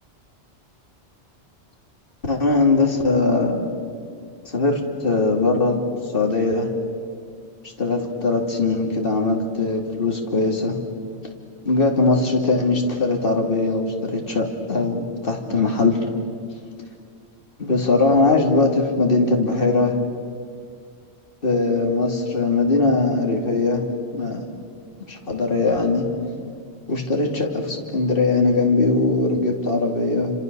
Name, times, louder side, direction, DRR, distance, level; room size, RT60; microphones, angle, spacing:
voice 1, 2.3-3.6 4.5-5.8 6.1-6.7 7.8-10.7 11.6-16.0 17.6-19.9 21.4-23.8 24.1-24.4 25.1-26.1 26.9-30.3, left 3 dB, 55° left, 1 dB, 3.0 m, -20 dB
29.5 x 26.0 x 6.9 m, 2.2 s
omnidirectional pair, 1.1 m